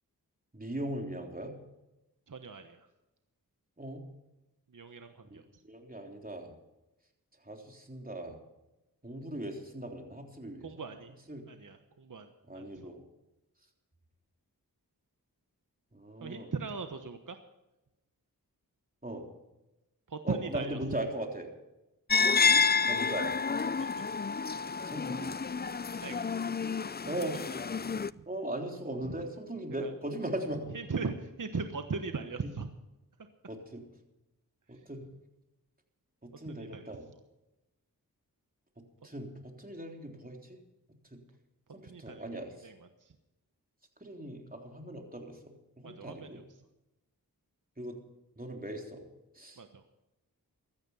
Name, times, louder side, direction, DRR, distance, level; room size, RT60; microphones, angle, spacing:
voice 1, 0.5-1.5 3.8-4.0 5.3-6.5 7.4-8.4 9.0-10.7 11.3-11.4 12.4-13.0 15.9-16.5 19.0-19.3 20.2-21.5 22.9-23.4 24.8-25.3 27.0-27.4 28.3-30.8 32.4-32.5 33.5-33.9 34.7-35.1 36.2-37.1 39.0-40.6 41.1-41.2 41.7-42.7 44.0-46.4 47.8-48.0 48.4-49.1 49.4-49.6, right 1 dB, 25° right, 2 dB, 3.5 m, -39 dB
voice 2, 2.3-2.9 4.7-5.6 10.6-11.1 11.5-12.9 16.2-17.4 20.1-21.0 23.8-24.0 26.0-26.2 28.1-28.2 29.0-29.1 29.8-29.9 30.7-32.7 36.5-36.9 41.9-43.1 45.8-46.4 49.6-49.8, right 4 dB, 55° right, 7 dB, 1.2 m, -39 dB
sound 1, 22.1-28.1, left 5 dB, 25° left, 0.4 m, -29 dB
16.0 x 13.5 x 5.7 m, 0.97 s
cardioid pair, 40°, 38 cm